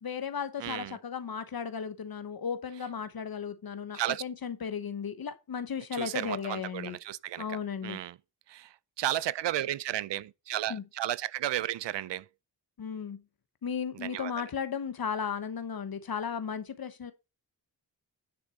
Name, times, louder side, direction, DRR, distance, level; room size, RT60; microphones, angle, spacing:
voice 1, 0.0-7.0 7.4-8.0 10.7-10.8 12.8-13.2 13.6-17.1, left 7 dB, 55° left, 1.1 m, -35 dB
voice 2, 0.6-1.0 3.9-4.2 5.9-8.2 8.5-12.3 13.9-14.5, right 13 dB, 80° right, 0.6 m, -34 dB
9.9 x 6.1 x 4.1 m
cardioid pair, 75°, 42 cm